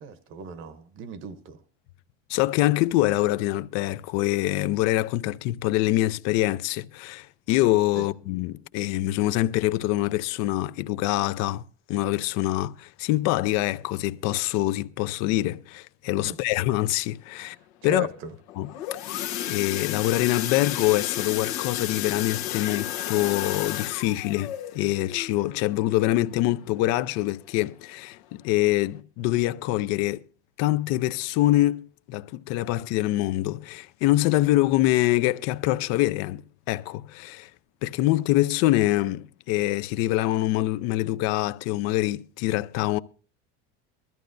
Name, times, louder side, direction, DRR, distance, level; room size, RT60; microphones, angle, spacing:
voice 1, 0.0-1.6 7.9-8.1 16.2-16.4 17.8-18.3, right 5 dB, 45° right, 0.8 m, -37 dB
voice 2, 2.3-11.6 11.9-17.6 17.8-18.1 18.6-18.7 19.5-30.2 30.6-36.4 36.7-37.5 37.8-43.0, left 16 dB, 60° left, 0.6 m, -25 dB
sound 1, 18.5-27.1 27.6-27.8 28.1-28.2 28.7-28.8, left 12 dB, 90° left, 1.3 m, -33 dB
21.0 x 13.5 x 2.6 m
cardioid pair, 145°, 30 cm